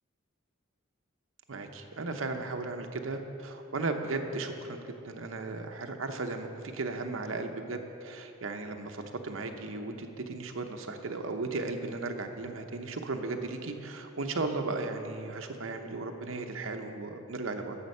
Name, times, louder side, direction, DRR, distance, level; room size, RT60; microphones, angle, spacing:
voice 1, 1.5-17.8, right 3 dB, 70° right, 5 dB, 0.8 m, -36 dB
11.0 x 7.2 x 5.4 m, 3.0 s
head